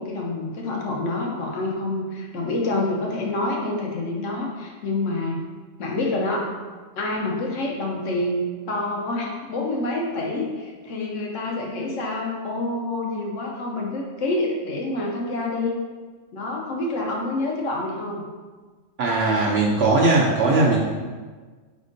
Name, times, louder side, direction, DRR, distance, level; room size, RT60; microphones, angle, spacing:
voice 1, 0.0-5.4 5.8-6.5 7.0-15.7 16.3-18.3, left 2 dB, 70° left, -1 dB, 0.9 m, -27 dB
voice 2, 19.0-20.8, right 3 dB, 65° right, -4 dB, 0.7 m, -19 dB
4.1 x 3.6 x 2.5 m, 1.4 s
omnidirectional pair, 1.4 m